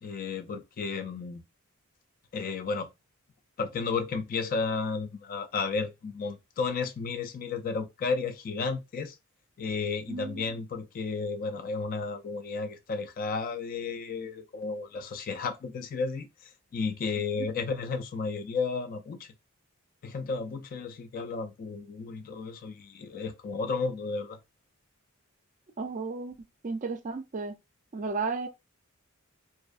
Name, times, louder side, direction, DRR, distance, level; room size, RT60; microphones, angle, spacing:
voice 1, 0.0-1.4 2.3-2.9 3.6-9.2 9.6-19.3 20.0-24.4, left 4 dB, 40° left, 0.3 m, -33 dB
voice 2, 10.1-10.4 17.4-17.5 25.8-26.4 26.6-27.6 27.9-28.5, right 4 dB, 35° right, 0.4 m, -33 dB
2.6 x 2.1 x 2.3 m
head